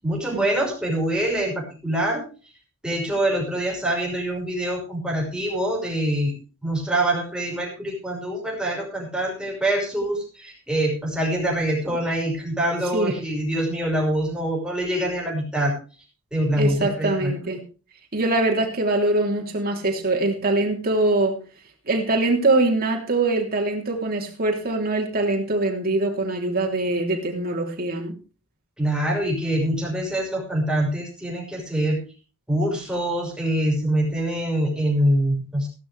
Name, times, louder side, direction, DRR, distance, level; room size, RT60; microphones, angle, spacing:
voice 1, 0.0-2.2 2.8-6.3 6.6-15.7 16.3-17.3 28.8-32.0 32.5-35.7, right 1 dB, 5° right, -1 dB, 5.7 m, -24 dB
voice 2, 16.6-17.6 18.1-21.4 21.8-28.2, right 2 dB, 45° right, 0 dB, 3.4 m, -23 dB
16.5 x 12.0 x 3.4 m, 0.36 s
head